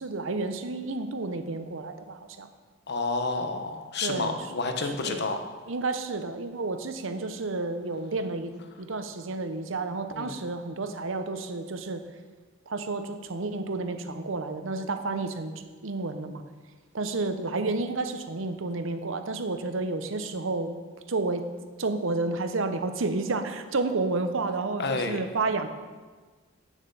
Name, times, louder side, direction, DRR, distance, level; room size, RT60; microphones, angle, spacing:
voice 1, 0.0-2.5 4.0-4.4 4.8-5.2 5.7-8.5 8.8-12.0 12.7-15.5 15.8-16.4 16.9-21.4 21.8-25.7, right 3 dB, 65° right, 9 dB, 0.8 m, -31 dB
voice 2, 2.9-5.4 10.1-10.4 24.8-25.2, left 3 dB, 55° left, 6 dB, 1.0 m, -30 dB
9.0 x 7.4 x 6.8 m, 1.4 s
head